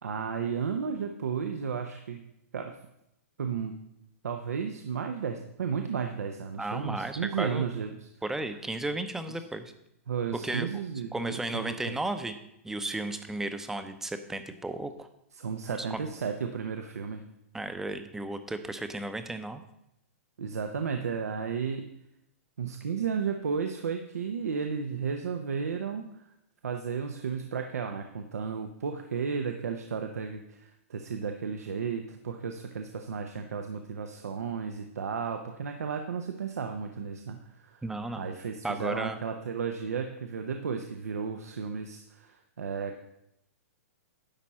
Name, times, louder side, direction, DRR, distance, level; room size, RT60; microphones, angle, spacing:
voice 1, 0.0-2.2 2.5-2.8 3.4-3.7 4.2-8.1 10.1-12.0 15.3-17.2 20.4-21.9 22.6-26.3 26.6-37.8 38.2-43.0, right 6 dB, 90° right, 5 dB, 0.8 m, -33 dB
voice 2, 6.6-7.7 8.2-9.7 10.4-10.8 11.1-12.4 12.6-15.1 15.8-16.0 17.5-19.6 37.8-38.3 38.6-39.2, right 2 dB, 5° right, 9 dB, 0.6 m, -34 dB
10.5 x 4.2 x 7.3 m, 0.82 s
hypercardioid pair, 140°, 8 cm